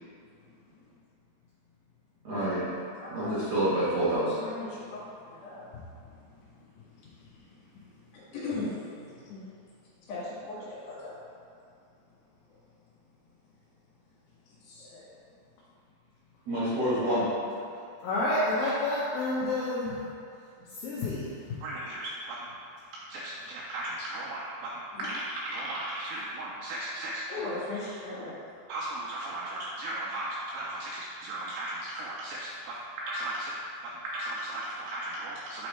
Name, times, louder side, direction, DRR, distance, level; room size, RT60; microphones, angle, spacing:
voice 1, 0.3-0.7 3.0-3.3 4.4-9.4 10.1-11.1 14.6-15.1 24.9-25.1 27.3-28.4, left 2 dB, 65° left, -8 dB, 3.1 m, -40 dB
voice 2, 2.2-2.6 3.1-4.4 16.5-17.3, right 1 dB, 65° right, -11 dB, 1.6 m, -27 dB
voice 3, 18.0-20.0 20.8-21.6, left 2 dB, 80° left, -7 dB, 2.1 m, -29 dB
voice 4, 21.6-22.5 23.1-27.5 28.7-33.5 33.8-35.7, right 1 dB, 85° right, -4 dB, 2.3 m, -36 dB
8.5 x 3.1 x 4.2 m, 2.4 s
omnidirectional pair, 5.1 m